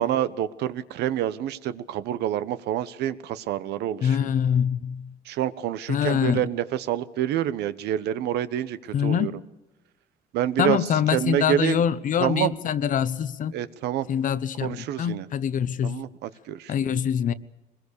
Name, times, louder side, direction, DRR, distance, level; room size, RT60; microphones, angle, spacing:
voice 1, 0.0-4.3 5.3-8.8 9.0-9.3 10.3-10.8 11.1-11.8 12.2-12.5 13.5-14.1 14.6-15.3 15.8-17.0, right 11 dB, 80° right, 1.1 m, -27 dB
voice 2, 4.0-5.1 5.9-6.4 8.9-9.4 10.6-13.5 14.1-16.0 16.7-17.3, left 8 dB, 50° left, 1.0 m, -24 dB
22.5 x 21.0 x 6.9 m
cardioid pair, 110°, 17 cm